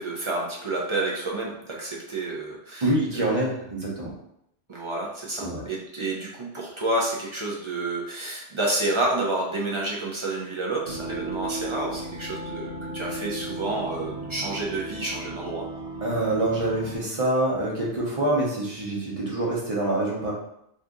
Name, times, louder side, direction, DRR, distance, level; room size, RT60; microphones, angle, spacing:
voice 1, 0.0-2.9 4.7-15.7, right 2 dB, 50° right, -4 dB, 0.3 m, -29 dB
voice 2, 2.8-4.1 5.4-5.6 16.0-20.3, right 1 dB, 35° right, -4 dB, 0.8 m, -26 dB
sound 1, 10.9-17.0, right 2 dB, 80° right, 0.9 m, -35 dB
2.7 x 2.5 x 3.5 m, 0.76 s
omnidirectional pair, 1.2 m